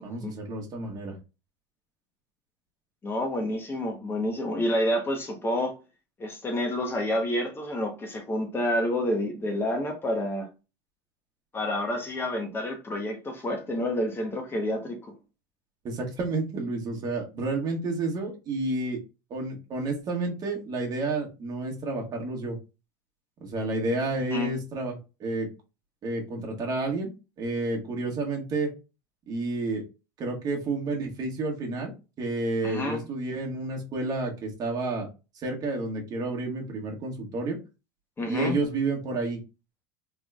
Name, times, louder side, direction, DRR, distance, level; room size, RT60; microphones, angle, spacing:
voice 1, 0.0-1.1 15.8-19.0 19.3-22.6 23.4-25.5 26.0-28.7 29.3-29.8 30.2-35.1 35.3-37.6 38.2-39.4, right 2 dB, 35° right, 1.6 m, -30 dB
voice 2, 3.0-5.8 6.2-10.5 11.5-15.1 24.3-24.5 32.6-33.0 38.2-38.5, left 1 dB, 20° left, 1.0 m, -29 dB
3.5 x 3.3 x 2.3 m
supercardioid pair, 105°, 11 cm